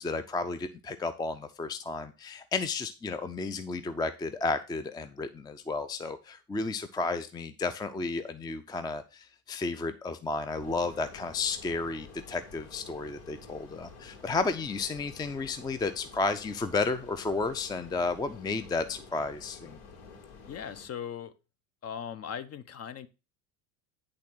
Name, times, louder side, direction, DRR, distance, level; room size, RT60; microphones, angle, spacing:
voice 1, 0.0-19.8, left 3 dB, 10° left, 0.5 m, -32 dB
sound 1, 10.6-20.9, left 5 dB, 70° left, 2.6 m, -50 dB
voice 2, 20.5-21.3 21.8-23.1, left 8 dB, 35° left, 0.9 m, -39 dB
10.0 x 3.8 x 6.1 m
supercardioid pair, 100°, 41 cm